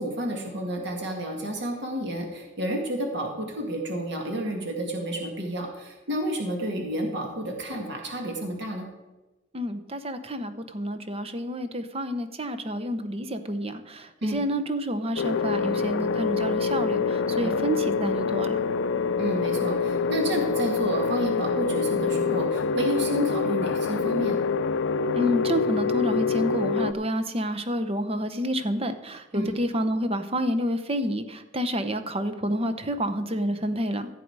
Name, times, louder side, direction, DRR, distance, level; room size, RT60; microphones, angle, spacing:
voice 1, 0.0-8.9 14.2-14.4 17.4-17.5 19.2-24.4 29.3-29.5, right 1 dB, 60° right, 1 dB, 2.0 m, -30 dB
voice 2, 9.5-18.6 25.1-34.1, equal, 30° right, 9 dB, 0.9 m, -29 dB
sound 1, 15.2-26.9, left 5 dB, 75° left, 0.5 m, -26 dB
15.5 x 7.8 x 4.8 m, 1.1 s
head